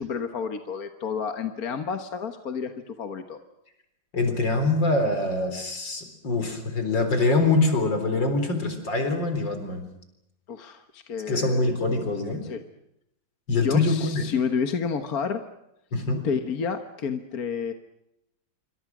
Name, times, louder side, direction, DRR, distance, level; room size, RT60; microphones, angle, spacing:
voice 1, 0.0-3.4 10.5-11.7 12.4-12.6 13.6-15.4 16.2-17.7, left 6 dB, 55° left, 7 dB, 1.7 m, -30 dB
voice 2, 4.1-9.8 11.3-12.4 13.5-14.2 15.9-16.2, left 2 dB, 75° left, 7 dB, 4.7 m, -24 dB
27.5 x 24.5 x 6.1 m, 0.82 s
omnidirectional pair, 2.0 m